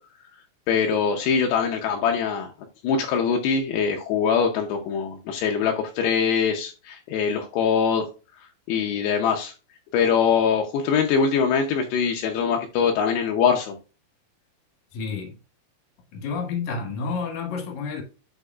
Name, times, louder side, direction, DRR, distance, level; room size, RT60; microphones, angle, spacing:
voice 1, 0.7-2.5 2.8-8.1 8.4-9.5 9.9-13.8, left 6 dB, 85° left, 2.4 m, -23 dB
voice 2, 14.9-15.3 16.1-18.0, left 5 dB, 55° left, 2.1 m, -30 dB
10.0 x 5.0 x 2.3 m
omnidirectional pair, 5.9 m